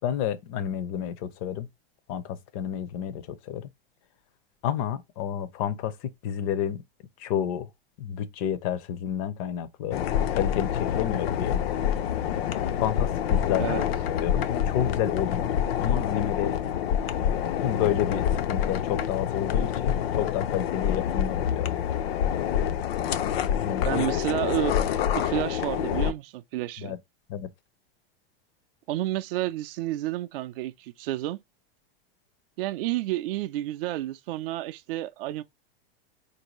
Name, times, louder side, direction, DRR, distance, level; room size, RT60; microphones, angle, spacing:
voice 1, 0.0-1.7 2.1-3.7 4.6-5.9 6.2-6.8 7.2-7.7 8.0-10.0 10.3-11.6 12.8-13.9 14.2-16.8 17.6-21.7 23.6-24.0 26.8-27.0 27.3-27.5, left 9 dB, 35° left, 0.5 m, -30 dB
sound 1, 9.9-26.1, left 9 dB, 75° left, 0.6 m, -27 dB
voice 2, 23.8-24.9 25.1-26.9 28.9-31.4 32.6-35.4, right 15 dB, 65° right, 0.4 m, -30 dB
4.5 x 2.6 x 3.0 m
supercardioid pair, 165°, 31 cm